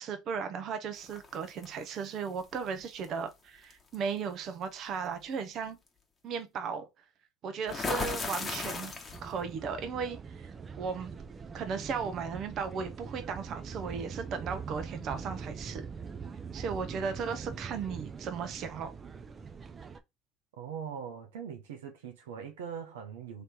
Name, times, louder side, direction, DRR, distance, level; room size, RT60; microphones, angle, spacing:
voice 1, 0.0-5.8 6.2-6.9 7.4-8.9 9.2-10.5 10.8-11.1 11.5-15.9 16.5-18.9, right 6 dB, 50° right, 0.9 m, -36 dB
sound 1, 1.1-1.7 3.0-3.2 3.7-3.9 7.7-9.4, left 4 dB, 25° left, 1.1 m, -35 dB
sound 2, 9.1-20.0, right 5 dB, 30° right, 0.6 m, -43 dB
voice 2, 20.6-23.4, right 7 dB, 85° right, 0.7 m, -41 dB
3.2 x 3.0 x 4.2 m
hypercardioid pair, 75°, 0 cm